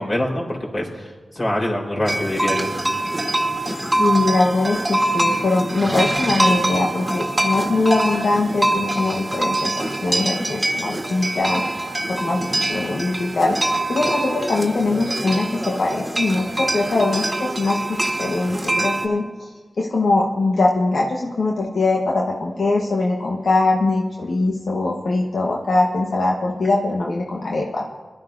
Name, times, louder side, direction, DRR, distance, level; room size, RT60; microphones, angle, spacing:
voice 1, 0.0-2.7, left 1 dB, 40° left, -2 dB, 4.1 m, -24 dB
sound 1, 2.1-19.1, right 1 dB, 25° right, 1.6 m, -24 dB
voice 2, 4.0-11.6 12.1-13.6 13.9-19.5 19.8-27.8, left 2 dB, 75° left, -1 dB, 1.1 m, -22 dB
23.5 x 12.5 x 2.6 m, 1.4 s
cardioid pair, 60°, 0 cm